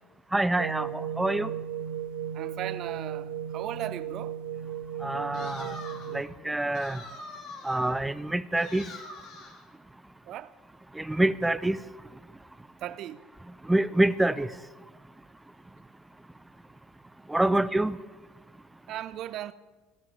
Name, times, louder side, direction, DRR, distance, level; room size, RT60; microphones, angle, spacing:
voice 1, 0.3-0.9 1.2-1.5 5.0-5.7 6.1-7.0 7.7-8.8 11.1-11.8 13.7-14.5 17.3-18.0, right 1 dB, 10° right, 16 dB, 0.5 m, -26 dB
sound 1, 0.6-6.2, right 9 dB, 80° right, 0.9 m, -35 dB
voice 2, 2.3-4.3 10.3-10.5 12.8-13.2 18.9-19.5, right 12 dB, 55° right, 15 dB, 0.6 m, -37 dB
sound 2, 5.3-6.2 6.7-8.0 8.6-9.7, left 3 dB, 55° left, 2.3 m, -44 dB
15.0 x 7.0 x 7.3 m, 1.3 s
hypercardioid pair, 70°, 0 cm